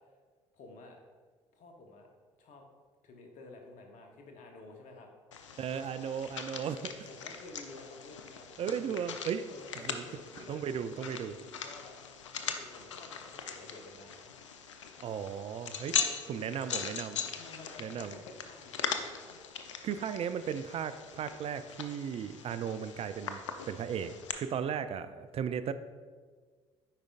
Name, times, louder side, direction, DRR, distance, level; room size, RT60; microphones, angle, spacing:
voice 1, 0.5-1.0 1.5-2.1 2.4-2.7 3.0-5.1 6.7-9.1 9.5-12.0 12.4-14.3 16.0-16.1 16.4-16.8 17.3-19.1 25.3-25.4, left 2 dB, 55° left, 2 dB, 1.1 m, -51 dB
sound 1, 5.3-24.3, left 7 dB, 85° left, 0.4 m, -40 dB
voice 2, 5.6-6.8 8.6-9.4 9.8-10.0 10.4-11.4 15.0-16.0 16.3-17.2 17.8-18.2 19.8-23.4 23.7-25.7, right 8 dB, 40° right, 11 dB, 0.4 m, -36 dB
8.6 x 5.0 x 2.4 m, 1.5 s
hypercardioid pair, 55°, 15 cm